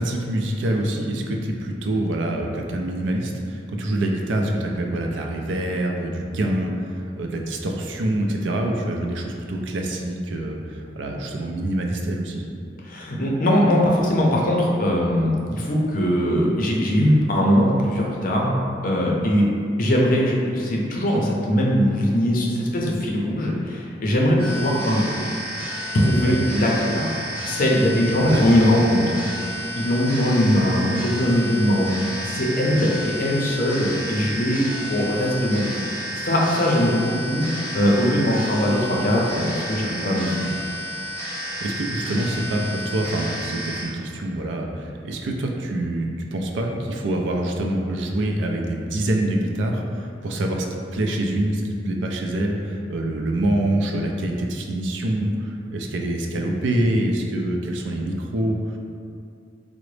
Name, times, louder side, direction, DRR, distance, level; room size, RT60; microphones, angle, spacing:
voice 1, 0.0-12.4 26.2-26.3 28.1-28.5 41.6-50.7 50.9-58.8, right 1 dB, 80° right, 1 dB, 0.4 m, -25 dB
voice 2, 12.9-18.6 18.8-19.4 19.8-25.3 25.7-29.1 29.8-35.8 36.2-40.5, equal, 50° left, -2 dB, 0.5 m, -21 dB
sound 1, 24.4-43.8, equal, 30° right, 1.3 m, -32 dB
3.7 x 2.0 x 3.2 m, 2.5 s
head